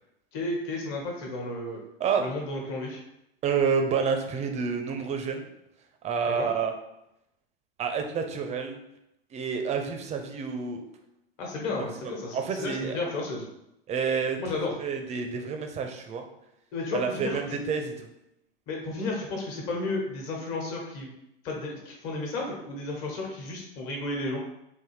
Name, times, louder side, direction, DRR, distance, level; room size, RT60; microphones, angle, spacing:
voice 1, 0.3-1.8 2.2-3.0 6.4-6.5 11.4-13.5 14.4-14.7 16.7-17.6 18.7-21.1 21.4-24.4, left 2 dB, 50° left, -1 dB, 1.3 m, -33 dB
voice 2, 3.4-5.5 6.0-6.7 7.8-8.8 9.3-10.8 11.7-13.0 13.9-14.4 14.8-16.2 16.9-18.1, right 6 dB, 25° right, 5 dB, 0.5 m, -29 dB
3.9 x 2.5 x 3.1 m, 0.83 s
hypercardioid pair, 90°, 30 cm